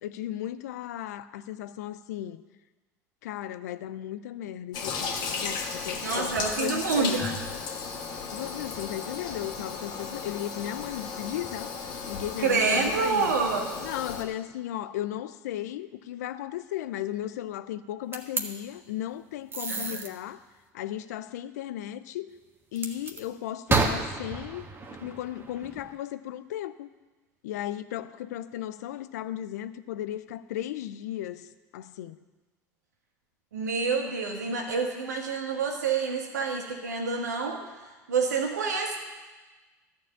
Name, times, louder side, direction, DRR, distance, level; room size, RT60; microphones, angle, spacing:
voice 1, 0.0-2.4 3.2-7.4 8.3-11.8 12.1-13.3 13.8-20.4 20.7-22.4 22.7-24.7 25.0-26.9 27.4-32.2, left 12 dB, 75° left, 0.5 m, -36 dB
Toilet flush, 4.7-14.2, left 5 dB, 55° left, 1.7 m, -35 dB
voice 2, 6.0-7.3 12.4-13.7 19.7-20.1 33.5-37.6 38.1-39.0, right 4 dB, 90° right, 1.6 m, -27 dB
sound 1, 18.1-18.4 19.5-20.1 22.8-23.2 23.7-25.9, right 3 dB, 25° right, 1.4 m, -30 dB
13.0 x 4.7 x 8.3 m
hypercardioid pair, 75°, 9 cm